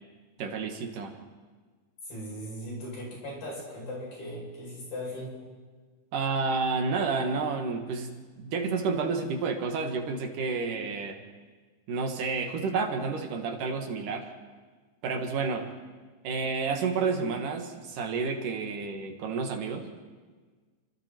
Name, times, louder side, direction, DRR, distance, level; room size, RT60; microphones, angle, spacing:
voice 1, 0.4-1.1 6.1-11.2 11.9-14.3 15.0-15.7 16.2-19.9, right 4 dB, 70° right, 4 dB, 3.4 m, -30 dB
voice 2, 2.0-5.4, equal, 80° left, -4 dB, 9.9 m, -38 dB
29.5 x 25.0 x 4.6 m, 1.4 s
omnidirectional pair, 3.9 m